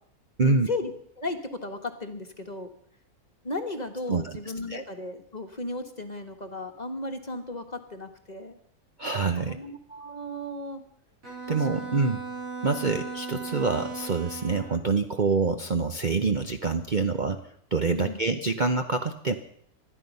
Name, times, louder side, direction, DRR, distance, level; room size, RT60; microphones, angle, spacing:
voice 1, 0.4-0.9 1.2-2.7 3.4-8.6 9.4-10.8 11.4-12.0 17.9-18.2, left 2 dB, 30° left, 6 dB, 1.3 m, -35 dB
voice 2, 4.1-4.4 4.7-4.8 9.0-9.6 11.5-12.2 12.6-17.4 17.7-19.3, right 4 dB, 40° right, 6 dB, 0.8 m, -26 dB
Bowed string instrument, 11.2-14.9, right 4 dB, 65° right, 5.4 m, -37 dB
20.0 x 13.0 x 5.5 m, 0.67 s
omnidirectional pair, 1.6 m